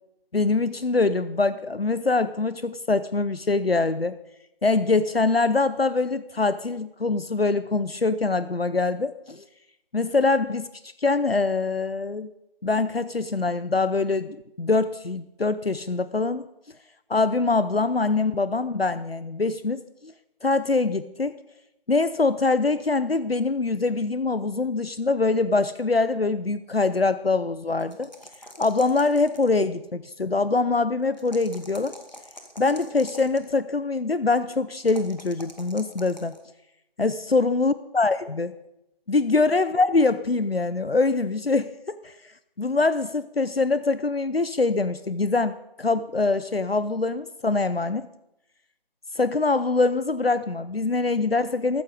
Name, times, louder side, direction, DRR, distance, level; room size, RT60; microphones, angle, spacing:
voice 1, 0.3-4.2 4.6-9.4 9.9-12.3 12.6-16.5 17.1-20.1 20.4-21.4 21.9-28.1 28.6-32.0 32.6-36.4 37.0-38.6 39.1-42.3 42.6-48.1 49.2-51.8, left 3 dB, 75° left, 14 dB, 0.8 m, -24 dB
sound 1, 27.8-29.7 31.1-33.5 34.8-36.4, equal, 45° left, 2.2 m, -45 dB
14.5 x 14.5 x 5.1 m, 0.85 s
figure-of-eight pair, 180°, 30 cm